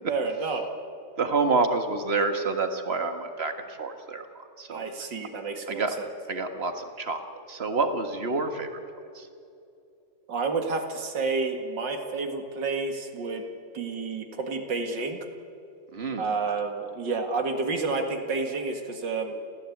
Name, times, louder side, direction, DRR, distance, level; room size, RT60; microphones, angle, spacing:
voice 1, 0.1-0.6 4.7-6.1 10.3-13.4 13.7-15.2 16.2-19.3, right 4 dB, 85° right, 5 dB, 2.6 m, -30 dB
voice 2, 1.2-4.3 4.6-4.9 5.7-5.9 6.3-7.2 7.5-8.8 9.2-9.3 15.9-16.2, right 3 dB, 35° right, 7 dB, 1.7 m, -28 dB
27.5 x 15.5 x 8.5 m, 2.6 s
omnidirectional pair, 1.9 m